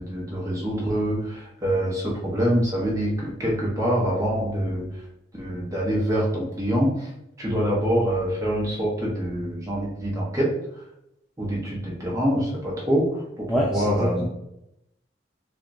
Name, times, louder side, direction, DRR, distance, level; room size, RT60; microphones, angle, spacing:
voice 1, 0.0-5.0 5.3-7.1 7.4-10.5 11.4-14.2, equal, 20° right, -4 dB, 1.1 m, -25 dB
voice 2, 13.5-14.2, equal, 5° right, -4 dB, 0.5 m, -25 dB
6.3 x 2.4 x 2.7 m, 0.83 s
head